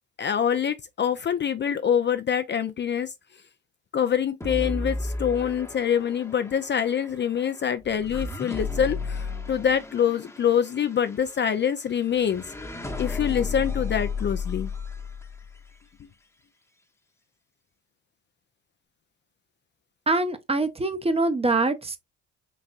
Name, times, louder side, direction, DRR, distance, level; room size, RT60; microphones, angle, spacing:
voice 1, 0.2-3.1 3.9-12.4 13.0-14.7, left 8 dB, 35° left, 0.5 m, -25 dB
sound 1, 4.4-15.7, left 4 dB, 10° left, 0.9 m, -34 dB
voice 2, 20.1-22.0, right 2 dB, 20° right, 0.7 m, -24 dB
4.1 x 3.3 x 2.4 m
hypercardioid pair, 60°, 33 cm